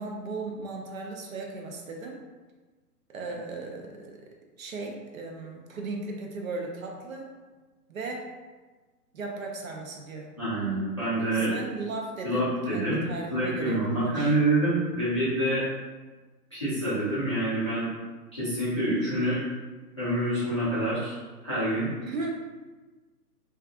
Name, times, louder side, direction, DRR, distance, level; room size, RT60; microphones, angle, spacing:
voice 1, 0.0-2.2 3.1-4.3 4.6-7.3 7.9-8.2 9.1-10.4 11.3-14.3 22.0-22.3, right 3 dB, 55° right, 0 dB, 0.5 m, -37 dB
voice 2, 10.4-11.6 12.2-13.0 13.3-15.6 16.5-17.9 18.3-19.4 20.0-21.2 21.4-21.9, right 1 dB, 20° left, -14 dB, 0.4 m, -26 dB
2.5 x 2.3 x 2.4 m, 1.3 s
hypercardioid pair, 145°, 49 cm